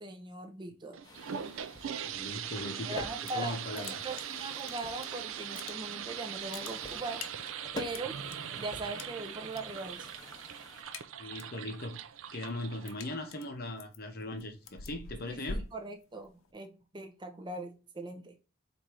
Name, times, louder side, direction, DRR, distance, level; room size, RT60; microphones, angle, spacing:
voice 1, 0.0-1.0 2.8-7.2 7.8-8.2 8.6-10.1 15.3-18.4, right 2 dB, 20° right, 0.5 m, -40 dB
sound 1, 0.9-13.4, right 9 dB, 70° right, 0.4 m, -41 dB
sound 2, 1.0-10.8, left 2 dB, 20° left, 0.8 m, -48 dB
voice 2, 2.0-4.0 11.2-12.0 12.3-15.7, left 1 dB, 45° left, 0.8 m, -39 dB
sound 3, 3.1-3.5 3.7-5.1 5.4-6.1 6.3-8.4 9.0-9.6 9.9-10.2 10.5-11.6 12.0-16.5, left 3 dB, 80° left, 0.6 m, -45 dB
4.2 x 2.6 x 4.7 m
head